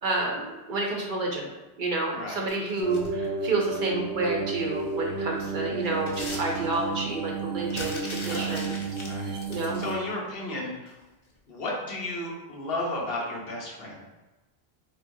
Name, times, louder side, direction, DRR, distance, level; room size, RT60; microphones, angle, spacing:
voice 1, 0.0-1.5 1.8-8.8 9.5-9.8, right 2 dB, 55° right, 0 dB, 0.7 m, -29 dB
voice 2, 2.1-2.4 8.2-8.6 9.0-9.3 9.6-10.9 11.5-14.0, left 2 dB, 65° left, -3 dB, 1.1 m, -33 dB
sound 1, 2.5-3.3 4.8-5.0 5.4-7.0 7.7-9.9 10.9-11.0 11.4-11.5, left 2 dB, 35° left, 0.5 m, -41 dB
sound 2, 2.8-9.9, right 4 dB, 85° right, 0.9 m, -32 dB
4.0 x 3.2 x 2.6 m, 1.1 s
omnidirectional pair, 1.1 m